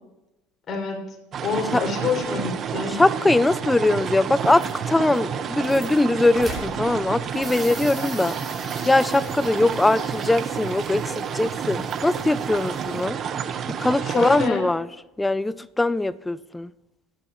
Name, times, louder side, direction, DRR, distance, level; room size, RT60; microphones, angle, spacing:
voice 1, 0.7-1.1 1.4-3.0 14.0-14.7, left 5 dB, 40° left, 6.2 m, -27 dB
sound 1, 1.3-14.5, right 7 dB, 45° right, 1.3 m, -30 dB
voice 2, 2.9-8.4 8.9-13.2 13.8-14.9 15.2-16.7, left 2 dB, 10° left, 0.5 m, -21 dB
sound 2, 4.2-13.1, right 1 dB, 15° right, 7.1 m, -42 dB
30.0 x 11.5 x 3.1 m
hypercardioid pair, 85°, 0 cm